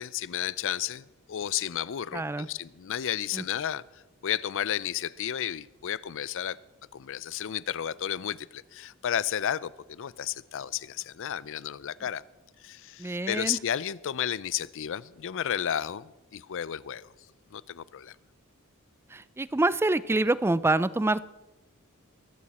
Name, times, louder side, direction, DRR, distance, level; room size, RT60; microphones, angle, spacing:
voice 1, 0.0-6.6 6.9-12.2 12.6-17.1 17.5-18.2, left 10 dB, 60° left, 20 dB, 0.5 m, -32 dB
voice 2, 2.1-2.5 3.3-3.4 13.0-13.6 19.1-21.3, right 2 dB, 10° right, 17 dB, 0.4 m, -26 dB
22.5 x 12.5 x 4.2 m, 1.1 s
head